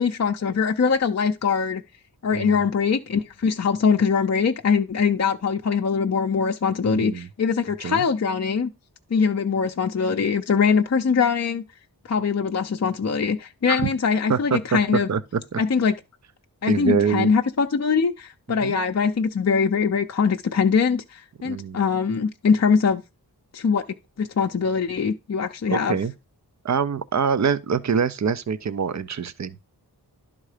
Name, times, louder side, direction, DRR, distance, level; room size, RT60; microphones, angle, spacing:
voice 1, 0.0-1.8 2.2-8.7 9.1-11.6 12.0-15.1 15.6-15.9 16.6-23.0 23.5-23.8 24.2-26.0, left 5 dB, 40° left, 0.5 m, -22 dB
voice 2, 2.3-2.6 6.8-7.3 7.8-8.0 13.7-13.9 14.3-14.8 15.1-15.6 16.7-17.3 18.6-18.7 21.4-21.8 25.7-26.1 26.6-29.6, right 6 dB, 45° right, 0.6 m, -25 dB
11.0 x 3.7 x 4.9 m
wide cardioid pair, 75°, 39 cm